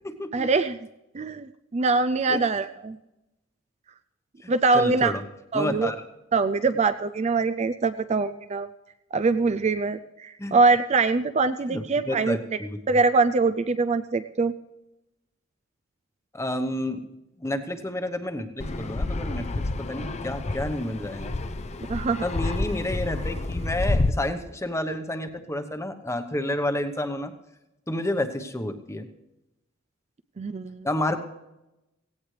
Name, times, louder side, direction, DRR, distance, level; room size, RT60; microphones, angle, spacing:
voice 1, 0.3-0.8 1.1-3.0 4.5-5.1 5.5-5.9 6.3-8.7 9.1-12.4 12.9-14.5 21.9-22.3 30.4-30.9, right 4 dB, 35° right, 11 dB, 0.4 m, -23 dB
voice 2, 4.4-5.2 5.5-6.0 10.4-10.5 11.7-12.7 16.3-17.0 17.4-19.5 19.9-21.3 22.2-27.3 27.9-29.1 30.8-31.2, left 1 dB, 15° left, 8 dB, 1.0 m, -30 dB
Fixed-wing aircraft airplane, 18.6-24.1, left 2 dB, 30° left, 0.6 m, -29 dB
17.0 x 17.0 x 3.3 m, 0.94 s
head